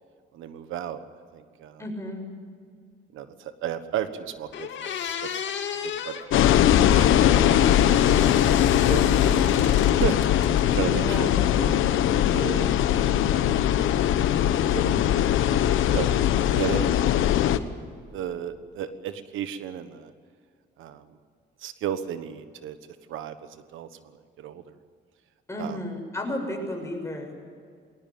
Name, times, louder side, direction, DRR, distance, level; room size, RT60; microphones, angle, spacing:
voice 1, 0.3-1.0 1.3-1.8 3.1-5.4 5.8-7.4 8.9-11.8 12.3-13.3 14.7-15.0 15.9-16.1 16.6-17.1 18.1-20.1 20.8-21.1 21.6-22.8 23.1-24.7 25.6-25.9, right 9 dB, 85° right, 11 dB, 1.3 m, -34 dB
voice 2, 1.8-2.3 10.9-11.4 25.5-27.5, left 1 dB, 15° left, 2 dB, 7.1 m, -33 dB
sound 1, 4.0-4.1 4.5-6.3 7.2-9.9 10.2-11.0, left 8 dB, 70° left, 2.1 m, -34 dB
sound 2, 6.3-17.6, left 11 dB, 85° left, 1.1 m, -20 dB
21.0 x 18.5 x 9.3 m, 2.1 s
cardioid pair, 90°, 20 cm